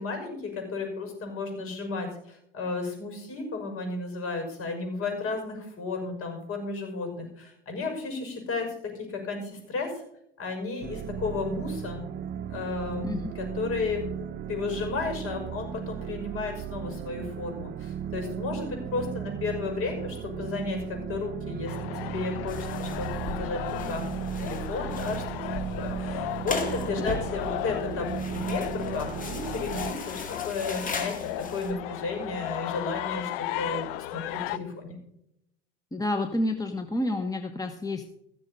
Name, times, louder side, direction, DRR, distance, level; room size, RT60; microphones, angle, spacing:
voice 1, 0.0-10.0 10.4-12.0 12.5-14.1 14.5-21.7 22.0-24.0 24.4-25.2 25.8-35.0, left 4 dB, 50° left, 4 dB, 6.0 m, -33 dB
sound 1, 10.8-29.9, right 9 dB, 40° right, 0.7 m, -36 dB
sound 2, 21.7-34.6, left 15 dB, 70° left, 0.7 m, -35 dB
sound 3, 22.5-31.7, left 3 dB, 25° left, 2.5 m, -38 dB
voice 2, 35.9-38.1, left 1 dB, 10° left, 6 dB, 1.2 m, -29 dB
16.5 x 6.7 x 5.4 m, 0.76 s
hypercardioid pair, 80°, 29 cm